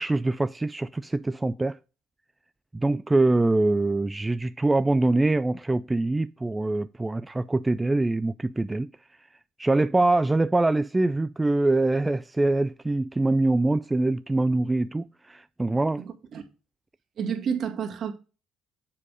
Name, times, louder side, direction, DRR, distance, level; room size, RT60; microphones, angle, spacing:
voice 1, 0.0-1.8 2.7-8.9 9.6-16.0, right 2 dB, 15° right, 0.3 m, -24 dB
voice 2, 16.0-16.4 17.2-18.1, right 7 dB, 55° right, 1.7 m, -30 dB
7.4 x 4.5 x 5.0 m
supercardioid pair, 75°, 0 cm